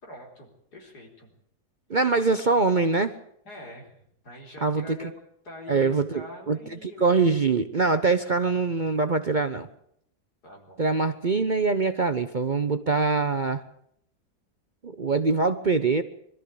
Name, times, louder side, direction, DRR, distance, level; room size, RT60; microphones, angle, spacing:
voice 1, 0.0-1.3 3.5-5.1 5.4-7.2 10.4-10.8, left 2 dB, 80° left, 1 dB, 5.1 m, -44 dB
voice 2, 1.9-3.1 4.6-4.8 5.7-9.7 10.8-13.6 14.8-16.0, right 4 dB, 40° right, 9 dB, 0.8 m, -23 dB
23.0 x 13.5 x 8.5 m, 0.71 s
omnidirectional pair, 1.7 m